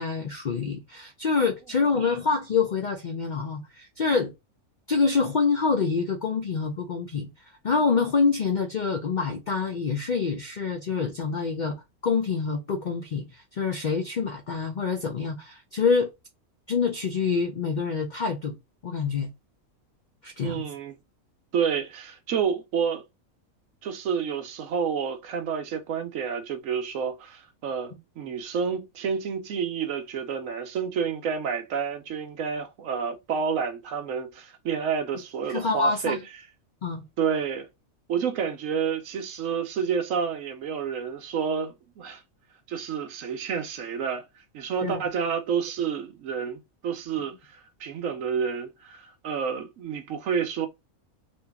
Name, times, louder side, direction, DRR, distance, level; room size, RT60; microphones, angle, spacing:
voice 1, 0.0-4.3 4.9-7.3 7.6-11.8 12.0-16.1 16.7-18.6 18.8-19.3 20.2-20.6 35.5-36.2 36.8-37.0 44.8-45.0, left 5 dB, 60° left, 0.4 m, -26 dB
voice 2, 20.4-20.9 21.5-23.0 23.8-36.2 37.2-37.7 38.1-42.2 42.7-44.2 44.5-50.7, right 7 dB, 70° right, 1.0 m, -29 dB
2.9 x 2.5 x 3.4 m
omnidirectional pair, 1.5 m